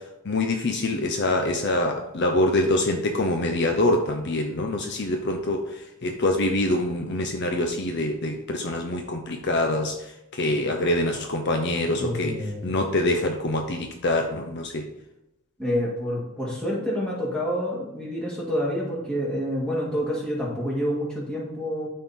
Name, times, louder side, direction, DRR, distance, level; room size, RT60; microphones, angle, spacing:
voice 1, 0.0-14.9, left 1 dB, 50° left, 4 dB, 0.6 m, -25 dB
voice 2, 12.0-12.7 15.6-21.9, equal, 5° left, -6 dB, 2.3 m, -28 dB
12.5 x 4.4 x 3.7 m, 0.91 s
head